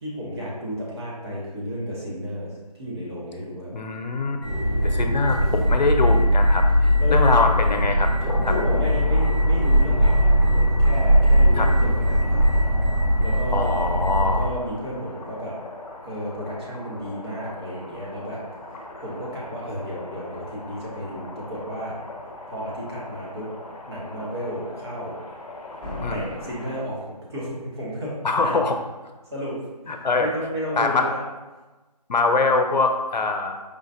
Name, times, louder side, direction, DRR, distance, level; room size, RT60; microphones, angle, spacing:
voice 1, 0.0-3.7 7.0-7.5 8.5-12.7 13.2-15.6 16.0-18.5 19.0-22.0 22.5-25.2 26.1-28.6 29.3-29.6 29.8-29.9 30.2-31.2, equal, 40° right, -6 dB, 1.2 m, -32 dB
voice 2, 3.7-4.4 4.8-6.6 7.1-8.1 8.4-8.5 11.6-11.7 13.5-14.5 26.0-26.2 28.2-28.8 29.9-30.3 30.8-31.1 32.1-33.8, left 3 dB, 85° left, 5 dB, 0.6 m, -23 dB
sound 1, 4.4-14.4, equal, 20° right, 0.5 m, -19 dB
sound 2, 8.1-26.8, left 2 dB, 50° left, 0.7 m, -39 dB
Slam, 25.8-27.7, left 2 dB, ahead, 1.0 m, -37 dB
4.8 x 2.5 x 2.7 m, 1.2 s
figure-of-eight pair, 165°, 21 cm